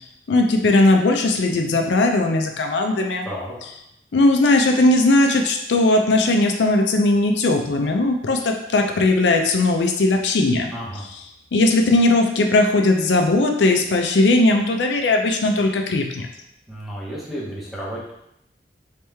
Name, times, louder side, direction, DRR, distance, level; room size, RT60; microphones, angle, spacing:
voice 1, 0.3-3.3 4.1-10.7 11.5-16.3, left 2 dB, 80° left, 3 dB, 0.4 m, -18 dB
voice 2, 3.2-3.5 10.7-11.1 16.7-18.1, equal, ahead, -6 dB, 0.9 m, -32 dB
3.2 x 3.0 x 3.4 m, 0.80 s
head